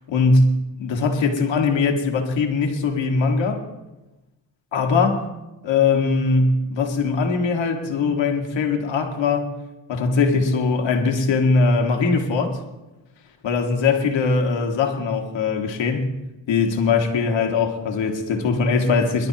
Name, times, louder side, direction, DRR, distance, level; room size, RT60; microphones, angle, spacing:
voice 1, 0.1-0.5 0.8-3.6 4.7-5.2 5.6-9.5 9.9-12.6 13.4-16.1 16.5-19.3, left 4 dB, 90° left, 3 dB, 2.0 m, -21 dB
25.5 x 12.0 x 3.0 m, 1.0 s
cardioid pair, 55°, 43 cm